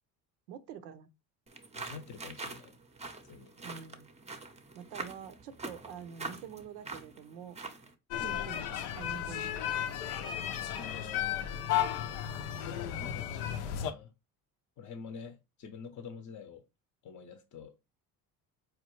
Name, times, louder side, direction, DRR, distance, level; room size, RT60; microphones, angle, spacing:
voice 1, 0.5-1.1 3.6-4.1 4.7-7.6 8.2-10.2, right 8 dB, 90° right, 0.6 m, -47 dB
sound 1, 1.5-7.9, right 3 dB, 15° right, 0.6 m, -44 dB
voice 2, 1.7-2.8 3.2-3.5 8.2-8.4 10.8-11.6 12.6-14.1 14.8-16.6 17.0-17.8, left 6 dB, 40° left, 0.6 m, -47 dB
sound 2, 8.1-13.9, left 10 dB, 80° left, 0.6 m, -34 dB
4.2 x 2.3 x 3.0 m
supercardioid pair, 70°, 46 cm